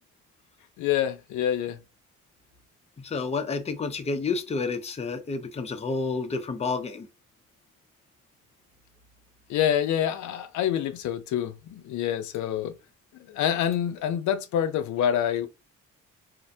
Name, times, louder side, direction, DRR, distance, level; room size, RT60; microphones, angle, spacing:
voice 1, 0.8-1.8 9.5-12.8 13.3-15.5, left 10 dB, 75° left, 0.5 m, -26 dB
voice 2, 3.0-7.1, left 4 dB, 20° left, 0.5 m, -30 dB
2.5 x 2.1 x 2.6 m
cardioid pair, 90°, 30 cm